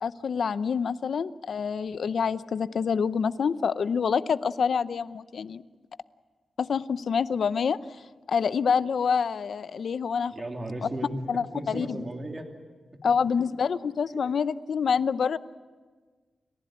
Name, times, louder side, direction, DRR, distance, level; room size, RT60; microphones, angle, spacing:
voice 1, 0.0-5.6 6.6-7.8 8.3-10.3 11.3-12.0 13.0-15.4, left 6 dB, 65° left, 15 dB, 0.6 m, -27 dB
voice 2, 10.3-11.2 11.5-12.5, right 1 dB, 25° right, 3 dB, 2.8 m, -35 dB
29.5 x 15.5 x 8.7 m, 1.4 s
wide cardioid pair, 135°, 0 cm